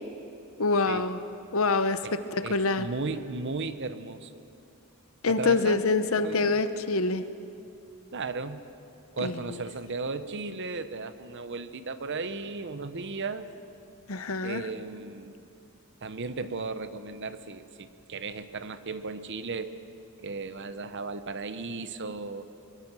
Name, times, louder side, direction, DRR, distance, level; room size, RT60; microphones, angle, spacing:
voice 1, 0.6-1.2 1.5-2.9 5.2-7.2 9.2-9.4 14.1-14.6, left 3 dB, 65° left, 11 dB, 0.9 m, -26 dB
voice 2, 2.4-4.4 5.3-6.6 8.1-8.7 9.2-13.5 14.4-15.4 16.0-19.8 20.2-22.5, right 3 dB, 55° right, 12 dB, 0.9 m, -35 dB
22.5 x 22.5 x 6.2 m, 2.7 s
head